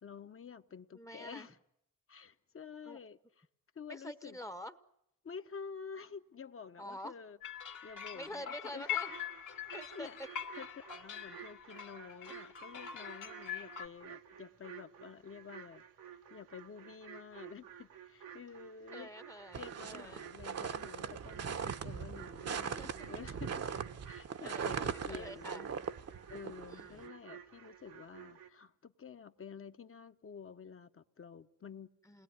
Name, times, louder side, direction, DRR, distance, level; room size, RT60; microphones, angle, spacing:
voice 1, 0.0-1.6 2.1-3.4 3.7-4.4 5.2-7.4 7.8-8.9 9.9-10.2 10.6-19.1 19.6-23.6 24.0-25.7 26.3-31.9, left 6 dB, 40° left, 1.1 m, -50 dB
voice 2, 0.9-1.5 2.9-3.0 3.9-4.7 6.8-7.1 8.1-9.2 9.7-10.1 18.9-20.2 22.6-23.1 24.4-25.7 26.7-27.1 32.0-32.2, equal, 10° left, 1.0 m, -47 dB
sound 1, 7.4-13.9, left 9 dB, 65° left, 2.3 m, -43 dB
sound 2, 9.0-28.5, right 9 dB, 90° right, 1.6 m, -53 dB
sound 3, 19.5-27.1, right 7 dB, 50° right, 1.1 m, -40 dB
28.5 x 20.5 x 9.6 m
cardioid pair, 80°, 33 cm